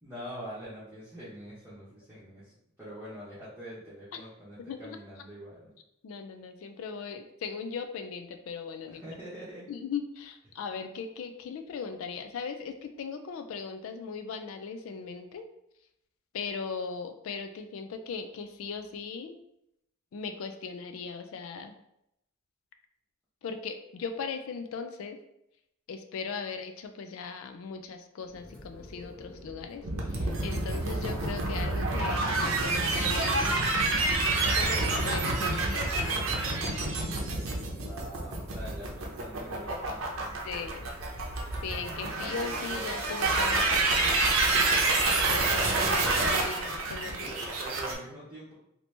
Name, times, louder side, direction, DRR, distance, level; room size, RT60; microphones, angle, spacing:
voice 1, 0.0-5.7 8.9-9.7 37.6-40.7 47.2-48.5, equal, 10° right, -11 dB, 0.9 m, -44 dB
voice 2, 4.7-5.0 6.0-9.0 9.7-15.5 16.3-19.4 20.1-21.8 23.4-25.2 25.9-29.8 30.1-33.6 34.5-36.2 40.4-40.9 41.6-44.1 45.3-47.3, left 5 dB, 75° left, 7 dB, 0.3 m, -38 dB
sound 1, 28.2-45.8, left 1 dB, 20° left, 0.8 m, -48 dB
sound 2, 29.8-47.9, right 2 dB, 70° right, 0.7 m, -28 dB
2.9 x 2.7 x 3.2 m, 0.80 s
head